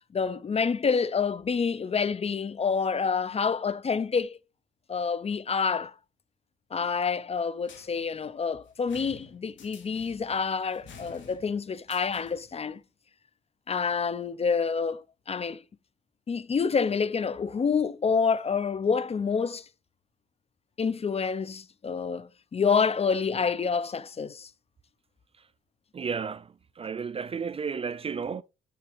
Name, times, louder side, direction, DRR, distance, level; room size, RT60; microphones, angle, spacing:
voice 1, 0.1-4.4 4.9-5.9 6.7-12.8 13.7-15.6 16.3-19.7 20.8-24.5, left 5 dB, 30° left, 0.5 m, -28 dB
sound 1, 7.6-12.6, left 4 dB, 70° left, 1.9 m, -51 dB
voice 2, 25.9-28.4, right 6 dB, 30° right, 0.4 m, -33 dB
6.9 x 5.7 x 3.3 m
cardioid pair, 90°, 20 cm